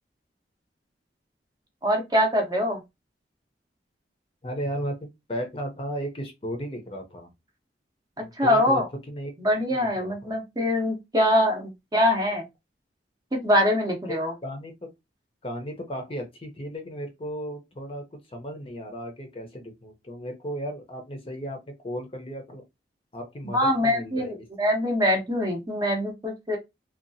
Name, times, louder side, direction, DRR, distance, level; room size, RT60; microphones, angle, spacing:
voice 1, 1.8-2.8 8.2-8.9 9.4-12.4 13.3-14.3 23.5-26.6, left 1 dB, 20° right, 0.6 m, -24 dB
voice 2, 4.4-7.3 8.2-10.4 14.1-14.2 14.4-14.9 15.4-22.6 23.1-24.5, equal, 30° left, 0.6 m, -35 dB
2.7 x 2.3 x 2.6 m
head